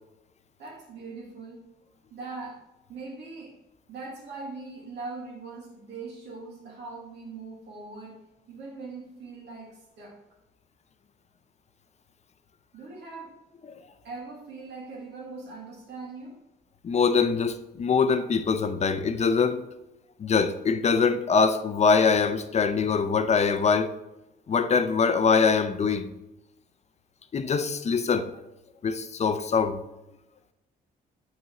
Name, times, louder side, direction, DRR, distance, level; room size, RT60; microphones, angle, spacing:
voice 1, 0.6-1.7 2.1-2.6 2.9-3.6 3.9-10.2 12.7-13.4 14.0-16.4, right 3 dB, 80° right, 2.1 m, -41 dB
voice 2, 16.8-19.6 20.2-24.0 24.5-26.1 27.3-28.3 28.8-29.8, left 5 dB, 40° left, 0.5 m, -23 dB
7.6 x 5.5 x 3.0 m
cardioid pair, 95°, 18 cm